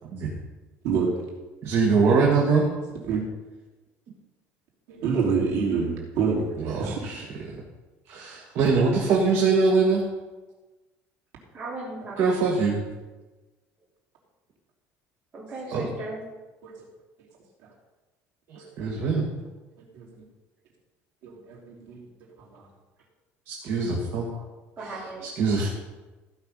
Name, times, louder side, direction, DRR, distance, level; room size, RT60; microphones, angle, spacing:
voice 1, 0.0-0.3 1.6-2.7 6.6-7.6 8.1-10.1 12.2-12.8 15.7-15.9 18.5-19.3 23.5-24.3 24.8-24.9 25.2-25.7, right 4 dB, 50° right, -2 dB, 1.9 m, -23 dB
voice 2, 4.9-6.5 6.8-7.1 16.6-16.7 18.5-19.0 19.9-20.2 21.2-22.1 22.4-22.6 23.7-23.9 24.3-24.4, right 5 dB, 80° right, -3 dB, 3.2 m, -28 dB
voice 3, 11.5-12.6 15.3-16.2 24.8-25.3, right 2 dB, 30° right, -7 dB, 3.9 m, -37 dB
15.5 x 5.9 x 5.5 m, 1.2 s
cardioid pair, 175°, 6 cm